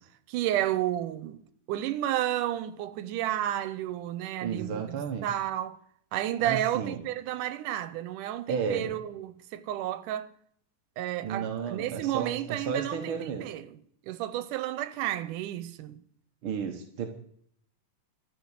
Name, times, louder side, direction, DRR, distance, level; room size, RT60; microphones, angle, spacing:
voice 1, 0.3-1.4 1.7-5.8 6.1-10.3 11.0-13.8 14.1-16.0, right 12 dB, 90° right, 2.2 m, -31 dB
voice 2, 4.4-5.3 6.4-7.0 8.5-8.9 11.2-13.5 16.4-17.1, right 6 dB, 60° right, 1.4 m, -33 dB
13.5 x 6.0 x 9.8 m
omnidirectional pair, 3.6 m